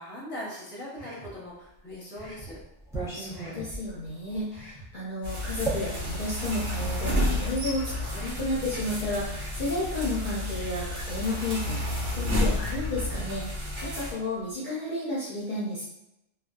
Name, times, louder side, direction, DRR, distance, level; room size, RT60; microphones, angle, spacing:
voice 1, 0.0-2.6, equal, 10° left, -6 dB, 0.7 m, -40 dB
sound 1, 0.9-1.4 2.1-2.5 3.3-3.7 4.5-4.9 5.7-6.1 6.9-7.3 8.1-8.5 9.3-9.7 10.5-10.9 11.7-12.1, right 1 dB, 45° right, 0.9 m, -46 dB
sound 2, 1.7-7.0 7.9-9.2 10.5-10.6 10.9-12.0 12.3-14.5, right 3 dB, 5° right, 0.3 m, -39 dB
voice 2, 3.1-15.8, left 1 dB, 50° left, -8 dB, 0.7 m, -32 dB
sound 3, 5.2-14.1, left 1 dB, 70° right, 1.1 m, -31 dB
2.5 x 2.3 x 2.2 m, 0.85 s
omnidirectional pair, 1.3 m